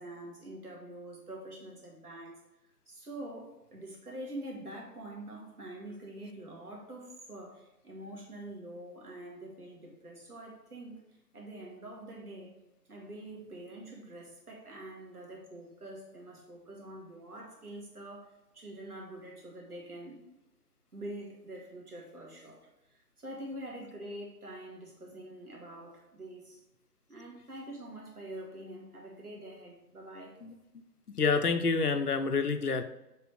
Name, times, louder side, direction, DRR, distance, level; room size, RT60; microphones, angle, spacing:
voice 1, 0.0-2.4 2.9-12.6 12.9-20.2 20.9-26.6 27.1-30.4, right 1 dB, 65° right, -1 dB, 2.3 m, -45 dB
voice 2, 31.1-32.8, left 4 dB, 65° left, 8 dB, 0.8 m, -28 dB
7.2 x 3.7 x 4.3 m, 0.94 s
figure-of-eight pair, 170°, 49 cm